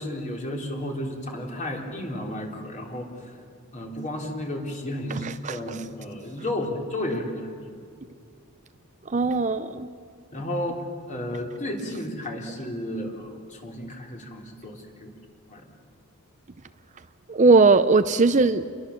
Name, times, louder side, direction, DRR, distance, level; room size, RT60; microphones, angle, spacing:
voice 1, 0.0-3.4 3.7-7.7 10.3-10.8 11.1-15.1 15.5-15.7, left 1 dB, 35° left, 0 dB, 3.6 m, -33 dB
voice 2, 5.1-5.6 9.1-9.9 17.3-18.6, right 3 dB, 35° right, 11 dB, 0.5 m, -19 dB
29.5 x 22.0 x 7.2 m, 2.3 s
head